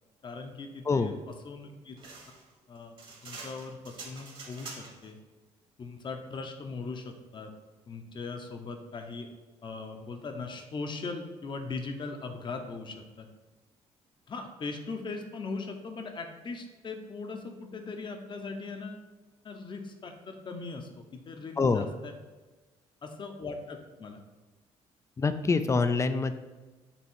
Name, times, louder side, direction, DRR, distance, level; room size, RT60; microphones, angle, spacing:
voice 1, 0.2-2.0 2.7-3.0 3.2-5.2 5.8-7.5 7.9-9.3 9.6-13.3 14.3-19.0 19.4-22.1 23.0-24.2, left 4 dB, 40° left, 5 dB, 0.9 m, -39 dB
sound 1, 2.0-5.1, right 3 dB, 45° right, 1.6 m, -46 dB
voice 2, 21.6-21.9 25.2-26.3, left 4 dB, 25° left, 10 dB, 0.4 m, -25 dB
7.1 x 3.1 x 4.6 m, 1.2 s
cardioid pair, 95°, 12 cm